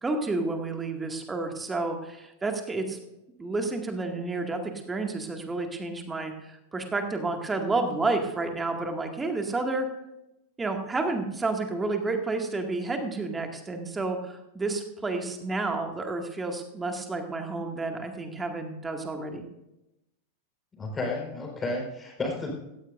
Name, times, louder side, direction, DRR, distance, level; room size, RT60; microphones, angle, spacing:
voice 1, 0.0-3.0 3.4-9.9 10.6-19.5, right 3 dB, 15° right, 4 dB, 2.0 m, -30 dB
voice 2, 20.8-22.5, left 2 dB, 15° left, 0 dB, 4.4 m, -32 dB
17.5 x 14.5 x 2.6 m, 0.89 s
figure-of-eight pair, 90°, 0 cm